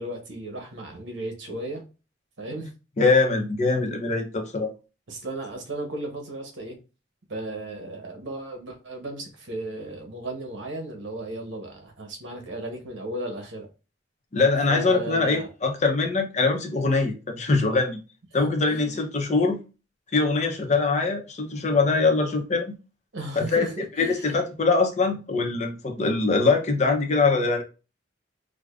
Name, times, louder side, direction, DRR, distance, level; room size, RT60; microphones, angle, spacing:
voice 1, 0.0-1.8 2.4-2.7 5.1-6.8 7.3-13.7 14.7-15.5 18.4-19.0 23.1-24.3, right 2 dB, 80° right, 1.0 m, -35 dB
voice 2, 3.0-4.7 14.3-18.0 18.3-19.6 20.1-22.7 23.4-23.7 24.0-27.6, left 3 dB, 40° left, 0.6 m, -23 dB
4.8 x 2.1 x 2.4 m
head